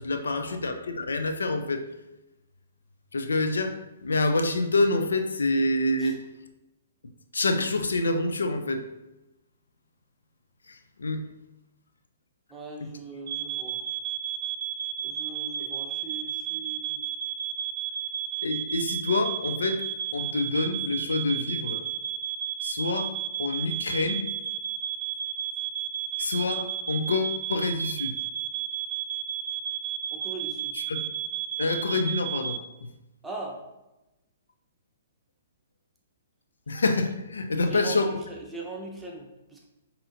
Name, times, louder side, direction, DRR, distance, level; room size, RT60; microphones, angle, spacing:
voice 1, 0.0-1.8 3.1-6.2 7.3-8.8 10.7-11.2 12.8-12.9 18.4-19.8 20.1-21.8 22.6-24.3 26.2-28.1 30.7-31.0 31.6-32.9 36.7-38.2, left 2 dB, 80° left, 7 dB, 0.4 m, -27 dB
voice 2, 12.5-13.8 15.0-17.0 30.1-30.8 33.2-33.6 37.6-39.6, right 3 dB, 5° right, -2 dB, 0.8 m, -40 dB
sound 1, 13.3-32.6, right 10 dB, 50° right, 0.4 m, -33 dB
5.4 x 2.8 x 2.5 m, 0.97 s
hypercardioid pair, 125°, 0 cm